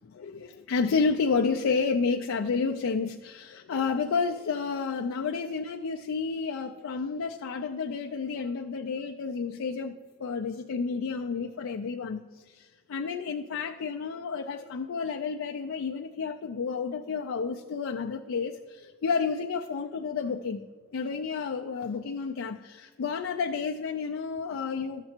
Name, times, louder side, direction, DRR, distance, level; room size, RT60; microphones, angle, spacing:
voice 1, 0.0-9.9 10.2-20.6 20.9-25.0, left 5 dB, 85° left, 3 dB, 0.4 m, -30 dB
13.0 x 6.7 x 4.4 m, 1.4 s
head